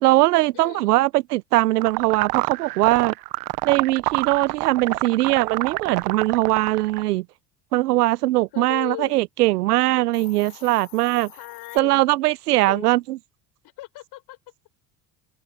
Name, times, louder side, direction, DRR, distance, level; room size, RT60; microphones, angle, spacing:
voice 1, 0.0-3.1 3.6-7.3 7.7-11.3 11.8-13.2, right 17 dB, 80° right, 0.9 m, -21 dB
voice 2, 0.5-1.0 8.5-9.1 11.4-12.0 12.6-12.9 13.8-14.4, left 17 dB, 55° left, 4.7 m, -37 dB
sound 1, 1.8-7.0, right 21 dB, 50° right, 0.9 m, -27 dB
Hiss, 10.0-11.8, left 22 dB, 75° left, 3.1 m, -47 dB
hypercardioid pair, 75°, 46 cm